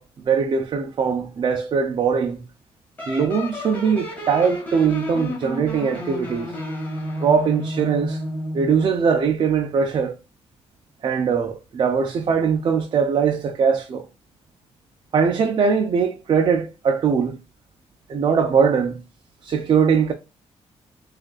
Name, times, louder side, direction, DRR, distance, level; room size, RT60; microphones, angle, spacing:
voice 1, 0.0-2.4 3.1-6.5 7.2-8.2 8.5-10.1 11.0-14.1 15.1-17.4 18.1-19.0 19.4-20.1, right 6 dB, 50° right, 0.5 m, -21 dB
sound 1, 3.0-9.0, equal, 15° left, 1.5 m, -31 dB
6.0 x 2.5 x 2.4 m
cardioid pair, 130°, 11 cm